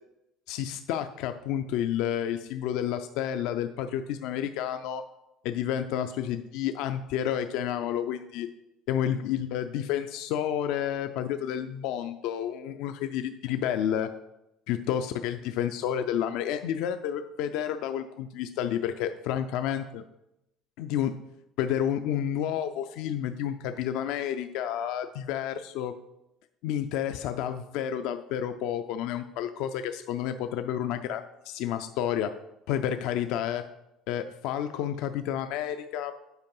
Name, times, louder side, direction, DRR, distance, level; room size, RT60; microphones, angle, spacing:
voice 1, 0.5-5.0 5.4-8.5 8.9-14.1 14.7-20.0 20.8-21.1 21.6-26.0 26.6-32.4 32.7-33.7 34.1-36.2, left 10 dB, 75° left, 9 dB, 0.4 m, -30 dB
8.1 x 4.6 x 5.3 m, 0.88 s
cardioid pair, 150°, 0 cm